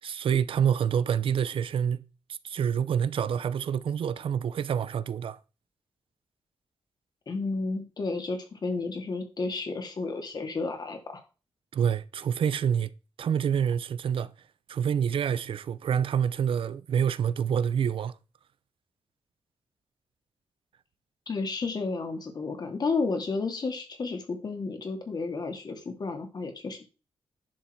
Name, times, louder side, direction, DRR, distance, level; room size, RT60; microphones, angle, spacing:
voice 1, 0.0-2.0 2.3-5.4 11.7-12.9 13.2-14.3 14.7-18.1, right 8 dB, 70° right, 0.7 m, -27 dB
voice 2, 7.3-11.2 21.3-26.8, left 3 dB, 45° left, 2.7 m, -32 dB
10.5 x 7.0 x 4.6 m
wide cardioid pair, 115°, 10 cm